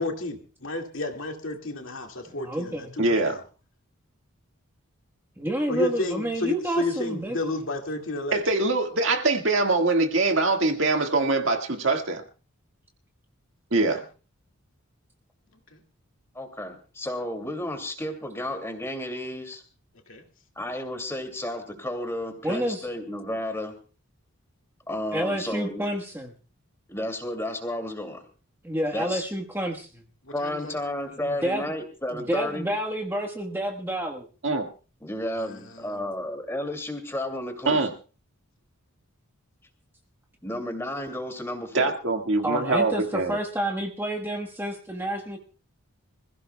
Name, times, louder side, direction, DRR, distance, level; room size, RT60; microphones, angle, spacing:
voice 1, 0.0-3.4 5.7-8.4 14.0-14.1 15.7-15.8 20.1-20.2 30.2-30.8 35.4-36.0, left 2 dB, 60° left, 3 dB, 2.2 m, -32 dB
voice 2, 2.4-2.9 5.4-7.4 22.4-22.9 25.1-26.3 28.6-30.0 31.2-31.6 32.1-34.2 42.4-45.4, right 1 dB, 10° right, 3 dB, 1.3 m, -29 dB
voice 3, 3.0-3.4 8.3-12.2 13.7-14.0 34.4-34.7 37.7-37.9 41.7-43.4, right 3 dB, 55° right, 4 dB, 1.8 m, -23 dB
voice 4, 16.3-19.6 20.6-23.8 24.9-25.8 26.9-28.2 28.9-29.2 30.3-32.7 35.0-37.9 40.4-41.9, left 1 dB, 10° left, 6 dB, 2.4 m, -32 dB
26.5 x 15.5 x 2.3 m, 0.36 s
head